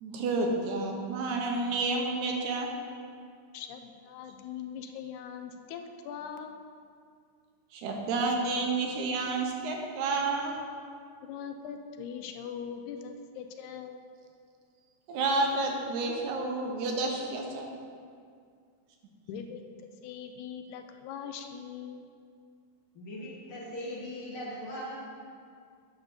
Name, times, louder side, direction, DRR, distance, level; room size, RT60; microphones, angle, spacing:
voice 1, 0.0-2.7 7.7-10.6 15.1-17.7, right 3 dB, 80° right, 1 dB, 2.3 m, -30 dB
voice 2, 3.5-6.6 11.2-14.0 19.3-22.1, left 7 dB, 80° left, 6 dB, 2.0 m, -41 dB
voice 3, 23.0-25.0, equal, 55° left, -4 dB, 1.6 m, -39 dB
9.5 x 3.9 x 6.5 m, 2.2 s
omnidirectional pair, 3.4 m